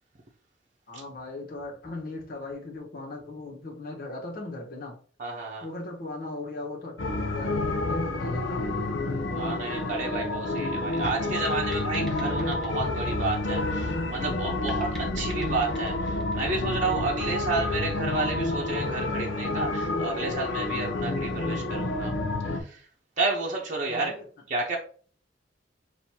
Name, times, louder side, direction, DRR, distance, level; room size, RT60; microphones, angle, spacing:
voice 1, 0.9-5.0 5.6-8.9 23.9-24.3, left 2 dB, 55° left, 1.2 m, -38 dB
voice 2, 5.2-5.7 9.3-22.1 22.5-22.9 23.2-24.1 24.5-24.8, right 3 dB, 45° right, 0.9 m, -31 dB
sound 1, 7.0-22.6, left 2 dB, 90° left, 0.7 m, -29 dB
sound 2, 11.5-14.0 14.7-17.2, equal, 5° left, 0.8 m, -47 dB
6.3 x 2.6 x 2.8 m
head